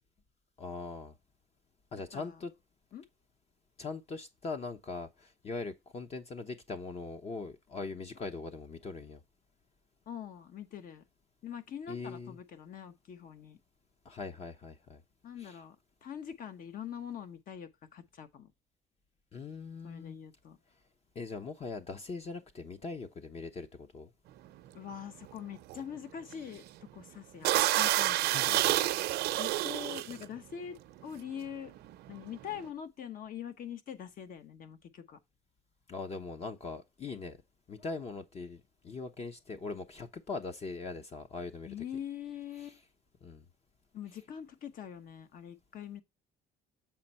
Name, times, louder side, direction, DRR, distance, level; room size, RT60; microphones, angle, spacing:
voice 1, 0.6-1.1 1.9-2.5 3.8-9.2 11.9-12.4 14.0-15.0 15.4-15.5 19.3-20.2 21.1-24.1 28.2-28.6 35.9-37.4 37.7-41.7 43.2-43.4, left 4 dB, 40° left, 0.9 m, -41 dB
voice 2, 2.1-2.4 2.9-3.0 10.1-11.0 11.4-13.6 15.2-15.8 16.0-18.5 19.8-20.6 24.7-28.4 29.3-30.8 31.0-31.7 32.1-35.2 41.6-42.8 43.9-46.0, left 9 dB, 55° left, 1.2 m, -43 dB
sound 1, 24.5-24.7 25.2-25.4 25.6-25.8 26.3-26.7 27.0-27.1 27.4-30.3 31.0-31.2 31.5-32.7, right 15 dB, 75° right, 0.6 m, -29 dB
7.6 x 4.5 x 4.2 m
cardioid pair, 110°, 17 cm